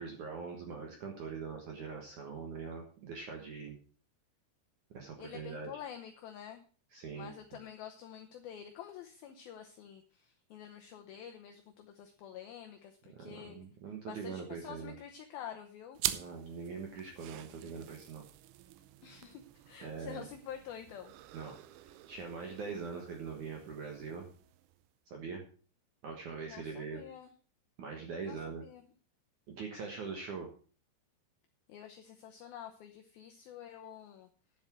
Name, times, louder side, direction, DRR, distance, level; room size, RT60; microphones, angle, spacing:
voice 1, 0.0-3.8 4.9-5.7 6.9-7.3 13.1-14.9 16.1-18.3 19.8-20.3 21.3-21.6 21.8-24.3 25.1-25.4 26.0-27.0 27.8-28.6 29.5-30.5, right 5 dB, 65° right, 2 dB, 2.0 m, -42 dB
voice 2, 5.2-6.6 7.1-13.6 14.0-16.0 19.0-21.1 26.5-27.3 28.2-28.8 31.7-34.3, left 9 dB, 85° left, 5 dB, 2.1 m, -48 dB
sound 1, 16.0-24.9, right 14 dB, 80° right, 3.1 m, -45 dB
10.5 x 7.5 x 6.2 m, 0.40 s
omnidirectional pair, 5.5 m